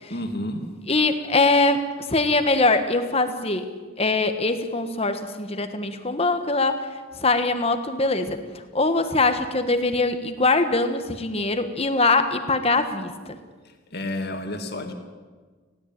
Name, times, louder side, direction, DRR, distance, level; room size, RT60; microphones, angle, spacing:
voice 1, 0.1-0.6 13.6-14.9, left 1 dB, 50° left, 5 dB, 2.3 m, -31 dB
voice 2, 0.9-3.7 4.0-6.8 7.2-8.4 8.7-13.1, left 3 dB, 25° left, 8 dB, 1.4 m, -22 dB
20.0 x 16.5 x 8.9 m, 1.4 s
head